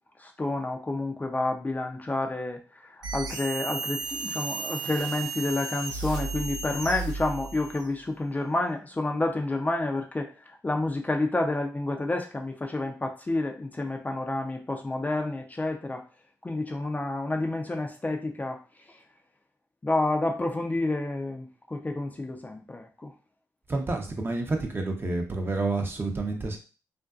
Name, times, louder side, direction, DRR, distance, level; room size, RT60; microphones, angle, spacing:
voice 1, 0.2-10.3 10.6-16.0 16.4-18.6 19.8-23.1, left 2 dB, 25° left, 3 dB, 0.4 m, -29 dB
sound 1, 3.0-7.9, right 3 dB, 75° right, 0.8 m, -34 dB
voice 2, 23.7-26.6, right 3 dB, 30° right, 3 dB, 0.6 m, -29 dB
2.5 x 2.1 x 2.3 m, 0.35 s
supercardioid pair, 55°, 7 cm